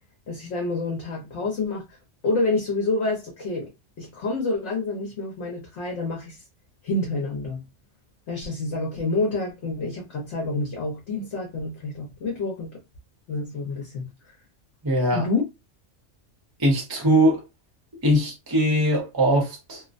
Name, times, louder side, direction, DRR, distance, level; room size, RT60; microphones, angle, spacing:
voice 1, 0.3-1.8 2.2-3.7 4.0-6.4 6.8-7.6 8.3-12.8 13.3-14.1 15.1-15.4, left 3 dB, 65° left, 1.1 m, -28 dB
voice 2, 14.8-15.3 16.6-17.4 18.0-19.8, right 1 dB, 20° right, 0.7 m, -21 dB
2.9 x 2.0 x 2.5 m
omnidirectional pair, 1.3 m